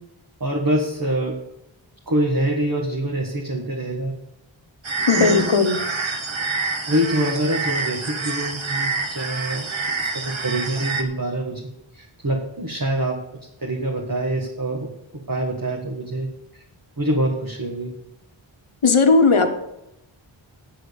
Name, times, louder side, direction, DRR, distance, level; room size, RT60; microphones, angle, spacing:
voice 1, 0.4-1.4 2.1-4.1 5.2-5.4 6.9-9.7 10.0-11.6 11.9-13.2 13.6-14.9 15.3-16.3 17.0-17.9, right 1 dB, 45° right, -1 dB, 1.8 m, -25 dB
sound 1, 4.8-11.0, right 4 dB, 75° right, 1.2 m, -27 dB
voice 2, 5.1-5.8 18.8-19.5, left 4 dB, 85° left, 6 dB, 1.2 m, -16 dB
8.3 x 7.7 x 7.0 m, 0.87 s
wide cardioid pair, 50°, 48 cm